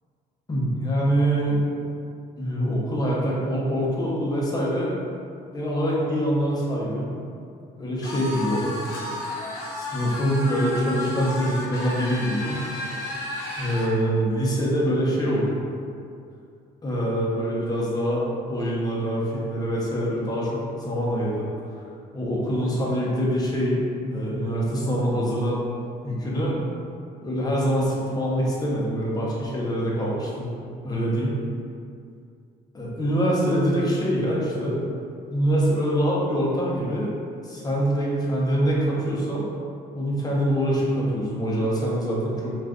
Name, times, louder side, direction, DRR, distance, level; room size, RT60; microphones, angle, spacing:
voice 1, 0.5-1.6 2.4-4.9 5.5-7.1 7.8-8.8 9.7-12.6 13.6-15.6 16.8-21.5 21.7-21.8 22.1-25.6 26.0-26.6 27.2-30.5 30.8-31.4 32.7-34.8 35.3-37.1 37.4-39.4 39.9-42.5, equal, 20° left, -5 dB, 0.7 m, -24 dB
sound 1, 8.0-13.9, left 1 dB, 80° left, 0.8 m, -33 dB
2.4 x 2.4 x 3.5 m, 2.4 s
cardioid pair, 110°, 17 cm